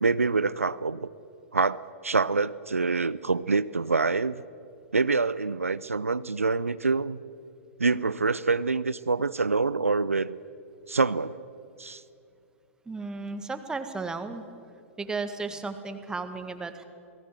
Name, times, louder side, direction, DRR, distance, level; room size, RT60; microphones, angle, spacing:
voice 1, 0.0-1.1 1.5-4.4 4.9-7.2 7.8-10.3 10.9-11.4 11.8-12.0, right 4 dB, 85° right, 16 dB, 0.5 m, -26 dB
voice 2, 12.9-14.4 15.0-16.8, right 3 dB, 10° right, 8 dB, 1.9 m, -34 dB
28.5 x 18.5 x 7.8 m, 2.5 s
figure-of-eight pair, 105°, 7 cm